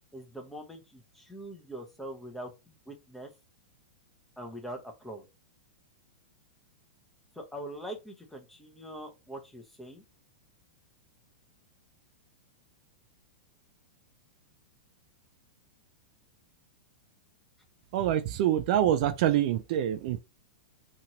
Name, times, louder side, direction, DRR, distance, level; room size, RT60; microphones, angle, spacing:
voice 1, 0.1-3.3 4.4-5.2 7.3-10.0, right 1 dB, 5° left, 0.7 m, -43 dB
voice 2, 17.9-20.2, right 11 dB, 50° right, 0.4 m, -26 dB
2.9 x 2.5 x 2.9 m
hypercardioid pair, 140°, 5 cm